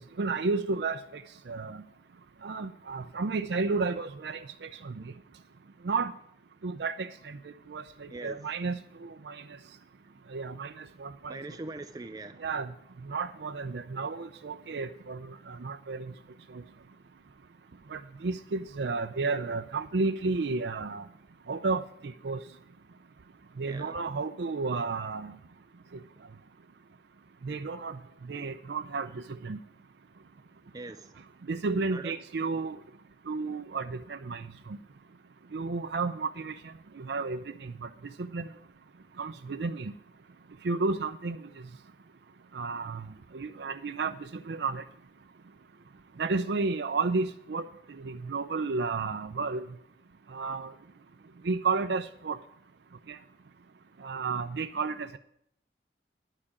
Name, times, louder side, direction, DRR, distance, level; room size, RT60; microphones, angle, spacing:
voice 1, 0.0-1.8 2.4-5.1 5.8-6.1 6.6-9.4 10.3-11.4 12.4-12.7 13.0-16.1 16.5-16.6 17.9-21.0 21.5-22.4 23.6-25.3 27.4-29.6 31.5-32.8 33.3-34.8 35.5-36.5 37.0-37.9 38.2-38.5 39.2-39.9 40.6-41.5 42.5-43.1 43.3-44.8 46.2-49.6 50.3-50.7 51.4-52.4 53.1-53.2 54.0-55.2, right 4 dB, 75° right, 0.5 m, -32 dB
voice 2, 11.3-12.4 23.6-23.9 30.7-31.2 31.9-32.1, right 2 dB, 20° right, 0.3 m, -41 dB
12.0 x 5.0 x 8.6 m
head